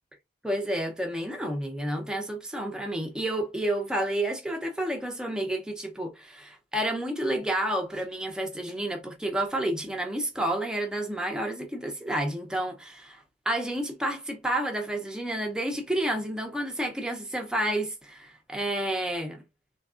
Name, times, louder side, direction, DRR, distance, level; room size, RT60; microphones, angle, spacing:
voice 1, 0.4-19.4, right 1 dB, 5° right, 0.5 m, -30 dB
3.4 x 2.2 x 2.3 m
head